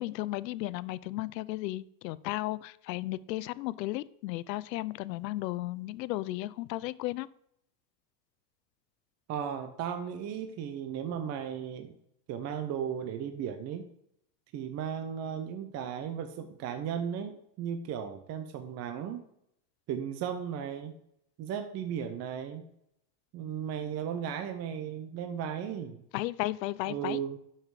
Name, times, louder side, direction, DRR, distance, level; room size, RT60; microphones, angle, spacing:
voice 1, 0.0-7.3 26.1-27.2, left 17 dB, 80° left, 18 dB, 0.7 m, -34 dB
voice 2, 9.3-11.9 12.3-13.9 14.5-19.3 19.9-20.9 21.4-22.7 23.3-26.0 26.9-27.4, right 8 dB, 30° right, 8 dB, 0.8 m, -35 dB
12.0 x 5.9 x 4.8 m, 0.75 s
supercardioid pair, 145°, 49 cm